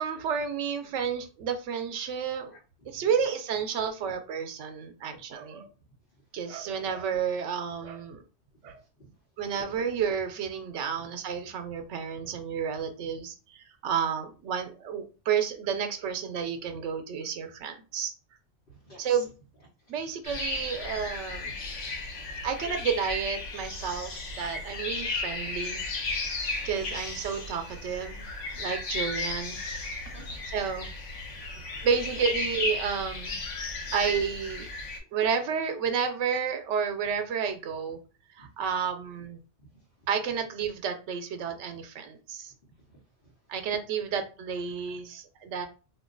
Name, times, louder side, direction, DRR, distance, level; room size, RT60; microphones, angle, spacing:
voice 1, 0.0-2.6 2.9-5.7 6.3-8.2 8.6-8.8 9.4-18.1 19.0-19.3 19.9-21.6 22.4-25.8 26.6-28.3 28.5-29.6 30.5-30.9 31.8-33.4 33.9-34.7 35.1-38.0 38.4-39.4 40.1-42.5 43.5-45.7, right 7 dB, 80° right, 7 dB, 0.9 m, -31 dB
voice 2, 2.5-3.1 4.1-4.2 5.1-5.2 8.6-9.1 10.9-11.0 18.7-19.3 19.8-20.0 21.8-21.9 22.2-22.5 26.2-26.3 30.1-30.4 38.4-38.5 39.7-40.1 41.5-41.6 42.9-43.3, right 1 dB, 50° left, -6 dB, 1.0 m, -54 dB
sound 1, 20.2-35.0, left 3 dB, 85° left, 1.1 m, -35 dB
2.5 x 2.2 x 3.7 m, 0.34 s
omnidirectional pair, 1.2 m